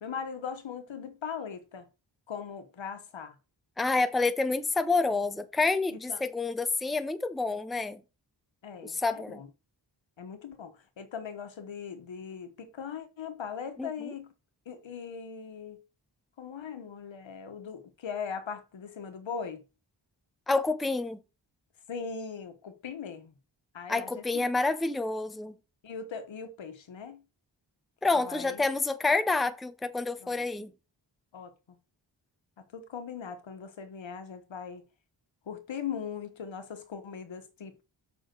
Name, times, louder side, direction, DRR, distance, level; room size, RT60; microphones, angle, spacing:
voice 1, 0.0-1.8 2.3-3.3 5.9-6.2 8.6-9.5 10.2-14.3 14.7-15.8 16.4-19.6 21.9-23.3 23.7-24.5 25.8-27.2 28.1-28.7 30.2-30.5 31.3-31.5 32.7-34.8 35.5-37.8, left 6 dB, 80° left, 1.3 m, -40 dB
voice 2, 3.8-8.0 8.8-9.4 13.8-13.9 20.5-21.2 23.9-25.5 28.0-30.7, left 3 dB, ahead, 0.5 m, -28 dB
6.8 x 5.7 x 3.9 m
wide cardioid pair, 110°, 45 cm